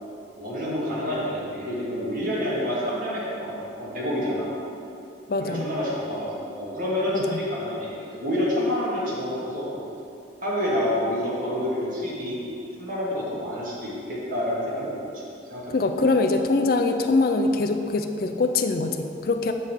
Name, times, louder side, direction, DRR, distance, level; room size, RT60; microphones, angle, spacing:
voice 1, 0.4-4.6 5.4-9.8 10.4-12.5 12.8-15.7, left 1 dB, 45° right, -7 dB, 1.9 m, -28 dB
voice 2, 5.3-5.6 7.1-7.4 15.7-19.5, left 3 dB, 50° left, 6 dB, 0.4 m, -23 dB
8.4 x 3.7 x 6.5 m, 2.7 s
head